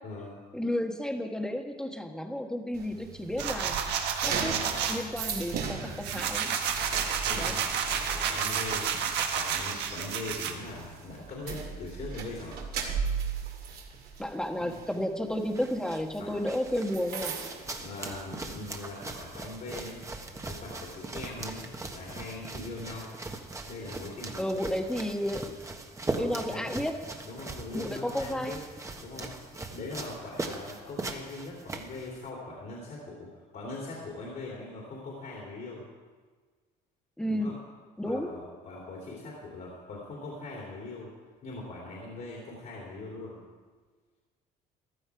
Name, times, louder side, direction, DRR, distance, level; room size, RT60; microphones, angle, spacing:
voice 1, 0.0-0.4 7.2-8.9 9.3-12.7 14.6-14.7 16.2-16.4 17.8-20.1 20.4-21.7 21.9-23.2 23.6-24.6 26.0-26.7 27.2-28.6 29.0-29.4 29.7-35.9 37.3-37.5 38.0-41.1 41.4-43.4, left 2 dB, 55° left, -3 dB, 2.9 m, -41 dB
voice 2, 0.5-3.8 4.2-6.6 7.3-7.6 14.2-17.3 24.4-25.6 26.2-27.0 27.7-28.6 37.2-37.6 38.0-38.3, equal, 5° left, 4 dB, 1.3 m, -32 dB
sound 1, 2.7-18.7 19.0-19.3 19.7-21.4, right 6 dB, 65° right, 2.2 m, -38 dB
sound 2, 3.4-5.0 5.5-10.5, right 7 dB, 85° right, 1.4 m, -30 dB
sound 3, 15.3-32.3, right 2 dB, 20° right, 1.3 m, -40 dB
15.5 x 12.0 x 4.8 m, 1.4 s
cardioid pair, 110°, 17 cm